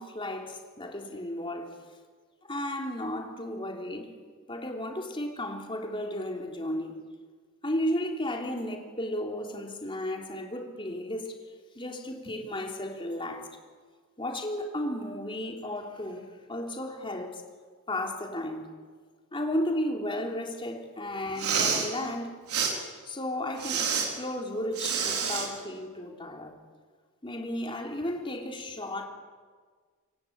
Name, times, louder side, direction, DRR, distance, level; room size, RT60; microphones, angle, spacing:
voice 1, 0.0-1.8 2.4-4.1 4.5-7.0 7.6-11.4 11.7-13.5 14.2-17.4 17.9-18.7 19.3-22.4 23.0-26.6 27.2-29.0, left 1 dB, 25° left, 3.3 m, -34 dB
Respiratory sounds, 21.3-21.9 22.5-22.7 23.6-24.1 24.7-25.5, right 6 dB, 90° right, 5.0 m, -28 dB
27.0 x 24.0 x 8.7 m
head